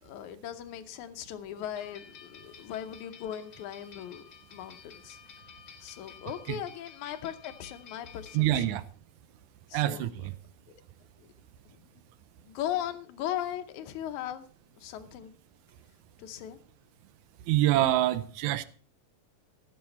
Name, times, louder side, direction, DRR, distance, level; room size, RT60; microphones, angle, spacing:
voice 1, 0.0-5.2 5.8-8.7 9.7-10.1 11.2-11.3 11.7-11.8 12.5-14.5 14.8-15.4 16.2-16.6, left 11 dB, 70° left, 2.0 m, -38 dB
sound 1, 1.7-8.8, left 7 dB, 45° left, 1.7 m, -52 dB
voice 2, 8.3-8.9 9.7-10.4 17.5-18.7, right 14 dB, 80° right, 1.8 m, -26 dB
16.0 x 7.9 x 4.3 m
omnidirectional pair, 4.0 m